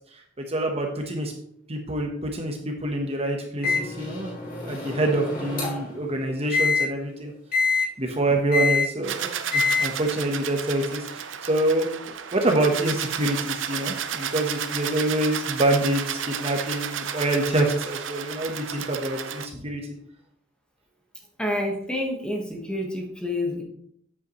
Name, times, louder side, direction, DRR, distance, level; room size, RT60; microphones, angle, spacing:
voice 1, 0.4-1.3 1.7-7.3 8.0-11.9 12.3-19.8, right 1 dB, 30° right, 2 dB, 1.1 m, -26 dB
Microwave oven, 3.6-6.0 6.5-6.8 7.5-7.9 8.5-8.9 9.5-9.9, left 4 dB, 50° left, 3.1 m, -25 dB
sound 1, 9.0-19.5, right 8 dB, 80° right, 0.7 m, -32 dB
voice 2, 21.4-23.6, left 1 dB, 5° left, 0 dB, 1.4 m, -28 dB
8.4 x 8.0 x 3.1 m, 0.67 s
head